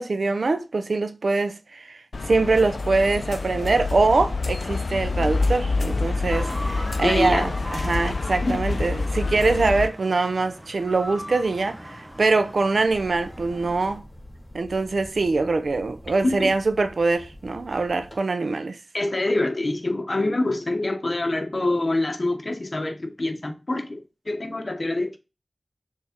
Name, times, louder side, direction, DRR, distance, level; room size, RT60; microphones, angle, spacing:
voice 1, 0.0-2.0 2.3-11.8 12.2-14.0 14.5-18.8, right 3 dB, 90° right, 0.6 m, -23 dB
sound 1, 2.1-9.9, left 3 dB, 80° left, 0.4 m, -27 dB
sound 2, 6.3-14.0, equal, 15° right, 0.9 m, -39 dB
voice 2, 7.0-7.5 8.4-8.6 16.2-16.5 18.9-25.2, left 2 dB, 50° left, 1.1 m, -25 dB
sound 3, 12.8-18.2, equal, 25° left, 3.6 m, -45 dB
6.4 x 3.6 x 4.4 m
wide cardioid pair, 60°, 0 cm